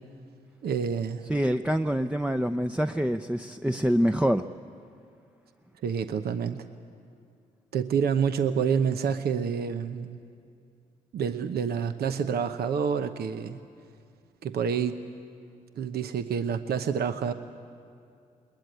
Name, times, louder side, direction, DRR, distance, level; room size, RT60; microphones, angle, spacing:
voice 1, 0.6-1.2 5.8-6.6 7.7-10.2 11.1-13.6 14.4-15.0 15.8-17.3, right 7 dB, 70° right, 8 dB, 0.9 m, -28 dB
voice 2, 1.3-4.4, equal, 5° right, 7 dB, 0.6 m, -25 dB
21.0 x 21.0 x 9.1 m, 2.4 s
supercardioid pair, 50°, 17 cm